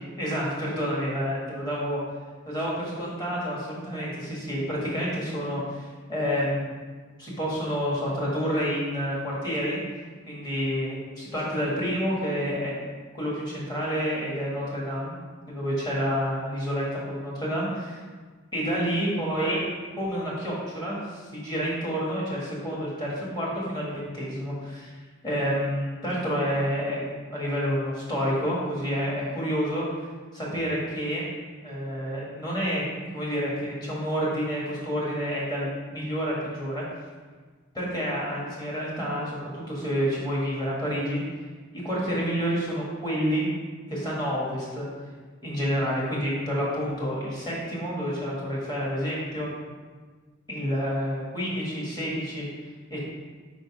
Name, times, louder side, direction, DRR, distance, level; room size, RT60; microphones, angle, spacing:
voice 1, 0.2-2.0 2.5-6.7 7.2-9.8 10.3-12.7 13.1-15.2 15.5-18.0 18.5-19.6 20.0-24.9 25.2-27.0 27.3-29.8 30.3-31.3 31.6-36.8 37.7-41.2 41.7-43.5 43.9-44.9 45.4-49.5 50.5-52.4 52.9-53.0, equal, 20° left, -5 dB, 1.6 m, -29 dB
5.0 x 4.0 x 4.8 m, 1.4 s
head